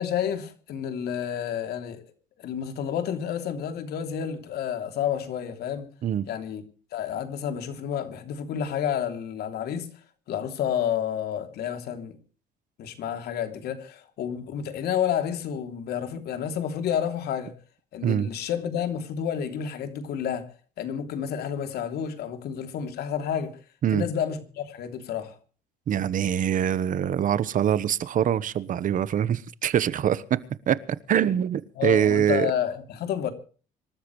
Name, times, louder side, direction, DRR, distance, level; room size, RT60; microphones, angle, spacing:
voice 1, 0.0-2.0 2.4-5.9 6.3-6.6 6.9-9.9 10.3-12.2 12.8-17.5 17.9-20.5 20.8-23.6 23.9-25.4 31.8-33.3, left 9 dB, 70° left, 3.1 m, -30 dB
voice 2, 25.9-30.4 30.7-30.8 31.1-32.5, right 9 dB, 50° right, 1.2 m, -24 dB
26.0 x 13.5 x 3.2 m
cardioid pair, 110°, 17 cm